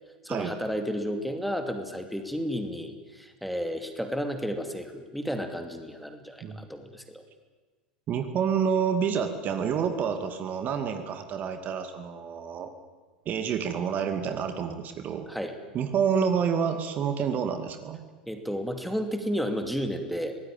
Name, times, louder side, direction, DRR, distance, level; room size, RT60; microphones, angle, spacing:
voice 1, 0.2-7.2 15.3-15.6 18.3-20.4, equal, ahead, 6 dB, 2.6 m, -32 dB
voice 2, 8.1-12.7 13.3-15.3 15.7-18.0, right 7 dB, 35° right, 8 dB, 2.3 m, -28 dB
24.5 x 19.0 x 9.0 m, 1.3 s
figure-of-eight pair, 80°, 5 cm